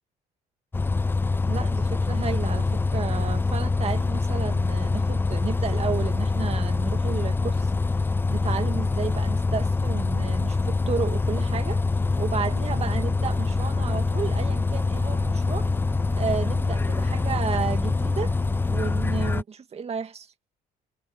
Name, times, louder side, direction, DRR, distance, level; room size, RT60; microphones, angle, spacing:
Bus, 0.7-19.4, left 3 dB, 15° left, 0.4 m, -25 dB
voice 1, 1.4-7.7 8.3-11.8 12.2-15.7 16.2-18.3 18.7-20.3, right 6 dB, 35° right, 2.3 m, -32 dB
sound 1, 11.8-19.2, right 15 dB, 90° right, 2.3 m, -44 dB
cardioid pair, 110°, 17 cm